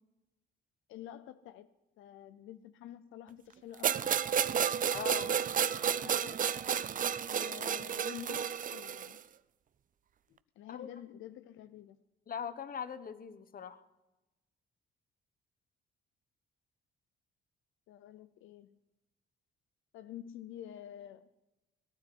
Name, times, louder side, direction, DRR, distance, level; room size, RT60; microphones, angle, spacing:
voice 1, 0.9-1.7 2.0-4.1 5.7-6.5 7.3-9.2 10.3-12.0 17.9-18.7 19.9-21.3, left 11 dB, 85° left, 0.6 m, -49 dB
sound 1, 3.8-9.2, right 8 dB, 40° right, 0.5 m, -31 dB
voice 2, 4.9-5.4 10.7-10.9 12.3-13.8, left 7 dB, 45° left, 1.1 m, -41 dB
18.0 x 9.7 x 8.0 m
cardioid pair, 90°, 20 cm